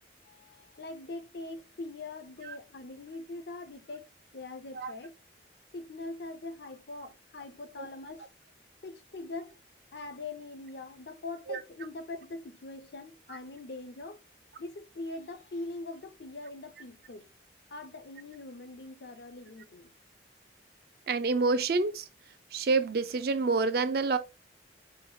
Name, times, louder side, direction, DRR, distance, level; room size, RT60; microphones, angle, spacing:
voice 1, 0.2-5.2 5.7-8.3 8.8-9.5 9.9-14.2 14.6-17.3 17.7-19.9, left 2 dB, 65° left, 0.6 m, -42 dB
voice 2, 21.1-22.0 22.5-24.2, right 4 dB, 55° right, 0.4 m, -27 dB
5.1 x 2.4 x 2.7 m
head